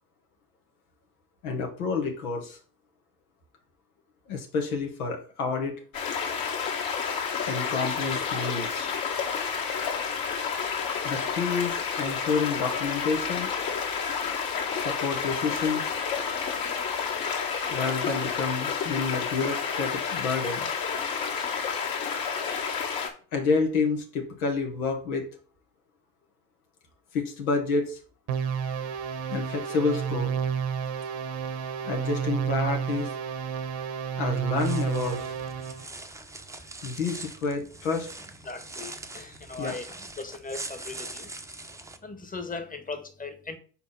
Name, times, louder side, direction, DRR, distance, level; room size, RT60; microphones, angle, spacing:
voice 1, 1.4-2.6 4.3-5.7 7.4-8.9 11.0-13.5 14.7-15.9 17.7-20.7 23.3-25.3 27.1-28.0 29.3-30.3 31.8-33.1 34.2-35.3 36.8-38.1 39.6-39.7, left 4 dB, 90° left, 1.6 m, -29 dB
sound 1, 5.9-23.1, left 6 dB, 55° left, 2.2 m, -30 dB
sound 2, 28.3-35.8, right 7 dB, 70° right, 1.1 m, -30 dB
sound 3, 34.5-42.0, right 2 dB, 5° right, 0.7 m, -42 dB
voice 2, 38.4-41.3 42.0-43.6, left 3 dB, 20° left, 1.3 m, -38 dB
4.5 x 4.4 x 5.6 m
hypercardioid pair, 70°, 43 cm